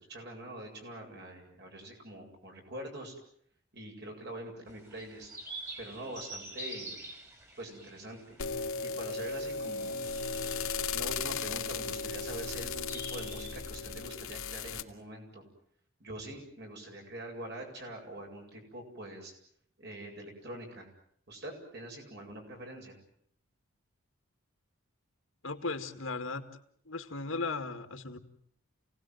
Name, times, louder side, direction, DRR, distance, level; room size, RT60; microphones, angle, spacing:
voice 1, 0.0-3.1 3.7-5.3 5.8-7.0 7.6-8.4 8.8-10.0 10.9-15.4 16.0-19.3 19.8-20.9 21.3-23.0, right 1 dB, 50° right, 2 dB, 7.9 m, -44 dB
sound 1, 4.7-13.6, right 1 dB, 15° right, 3.6 m, -47 dB
sound 2, 8.4-14.8, left 4 dB, 80° left, 2.4 m, -36 dB
voice 2, 25.4-26.4 26.9-28.2, left 3 dB, 65° left, 7 dB, 2.1 m, -36 dB
28.0 x 18.5 x 9.3 m, 0.66 s
head